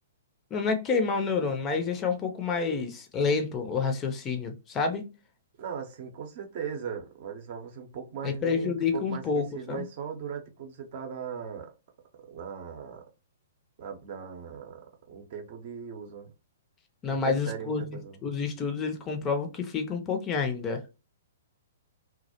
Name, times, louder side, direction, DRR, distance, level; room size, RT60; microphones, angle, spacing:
voice 1, 0.5-5.1 8.2-9.8 17.0-20.8, left 5 dB, 25° left, 0.4 m, -29 dB
voice 2, 5.6-11.7 12.3-13.0 13.8-16.3 17.1-18.2, right 7 dB, 50° right, 0.6 m, -39 dB
2.3 x 2.0 x 2.7 m
figure-of-eight pair, 120°, 0 cm